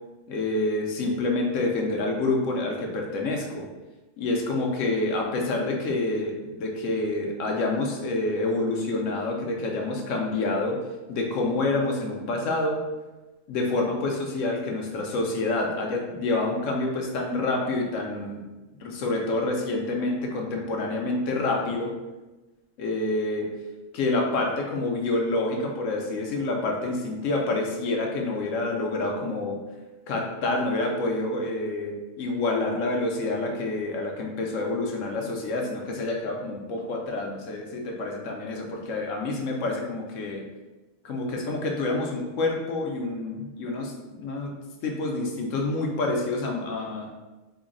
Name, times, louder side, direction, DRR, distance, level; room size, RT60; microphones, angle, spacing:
voice 1, 0.3-3.7 4.2-10.8 11.1-12.8 13.5-18.5 18.8-21.9 22.8-23.5 23.9-29.6 30.1-40.4 41.0-44.5 44.8-47.1, left 2 dB, 70° left, 0 dB, 0.9 m, -27 dB
3.8 x 2.1 x 3.7 m, 1.1 s
omnidirectional pair, 1.5 m